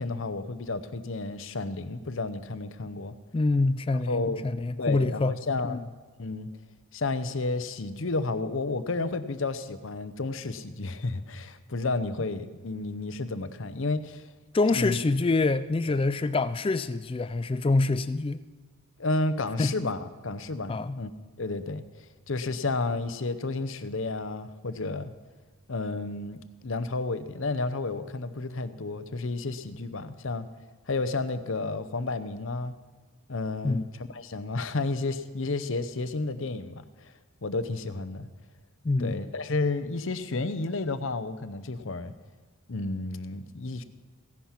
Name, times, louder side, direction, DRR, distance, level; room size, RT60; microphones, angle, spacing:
voice 1, 0.0-3.1 3.9-4.5 4.8-5.8 6.2-6.5 6.9-14.2 14.7-15.0 15.9-16.0 19.0-21.1 21.4-21.8 22.3-25.1 25.7-30.4 30.9-32.7 33.3-33.9 34.1-37.1 37.4-38.3 39.0-42.1 42.7-43.8, left 3 dB, 60° left, 0.8 m, -31 dB
voice 2, 3.3-5.3 5.6-5.8 14.5-18.4 19.6-19.7 20.7-21.0 33.6-33.9 38.8-39.3, left 3 dB, 25° left, 0.3 m, -26 dB
15.5 x 10.5 x 5.8 m
head